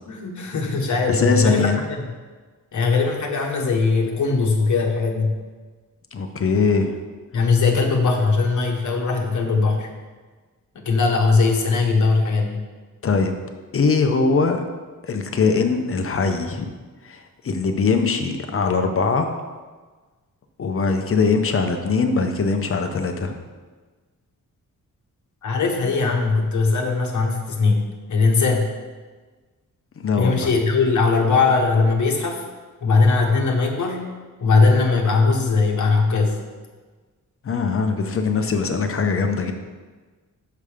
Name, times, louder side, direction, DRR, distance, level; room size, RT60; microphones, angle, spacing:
voice 1, 0.1-2.1 2.7-5.3 7.3-9.9 10.7-12.6 25.4-28.7 30.2-32.4 32.8-34.1 34.4-36.4, left 4 dB, 60° left, 1 dB, 1.1 m, -20 dB
voice 2, 1.1-1.8 6.1-6.9 13.0-13.3 13.7-14.6 15.0-16.7 17.0-17.2 17.4-19.4 20.6-23.3 30.0-30.5 37.4-39.5, left 4 dB, 40° left, 6 dB, 0.6 m, -21 dB
6.7 x 5.2 x 4.9 m, 1.4 s
wide cardioid pair, 180°, 34 cm